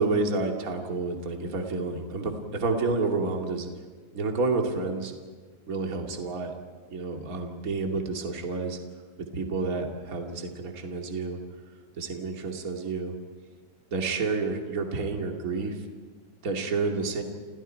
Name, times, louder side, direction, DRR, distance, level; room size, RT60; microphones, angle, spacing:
voice 1, 0.0-3.7 4.1-5.1 5.7-6.5 6.9-8.8 9.3-11.4 12.0-13.1 13.9-15.8 16.4-17.2, right 3 dB, 30° right, 2 dB, 1.8 m, -29 dB
29.5 x 28.0 x 4.6 m, 1.5 s
omnidirectional pair, 5.1 m